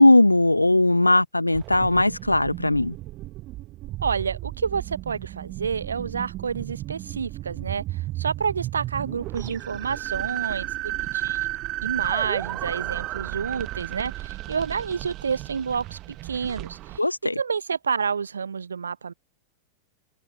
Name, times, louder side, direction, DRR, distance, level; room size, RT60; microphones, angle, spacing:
voice 1, 0.0-2.9 17.0-17.4, left 2 dB, 85° left, 0.8 m, -18 dB
sound 1, 1.5-17.0, right 17 dB, 35° right, 1.2 m, -33 dB
voice 2, 4.0-11.5 11.8-17.0 17.4-19.1, right 6 dB, 70° right, 0.8 m, -29 dB
figure-of-eight pair, 90°, 0 cm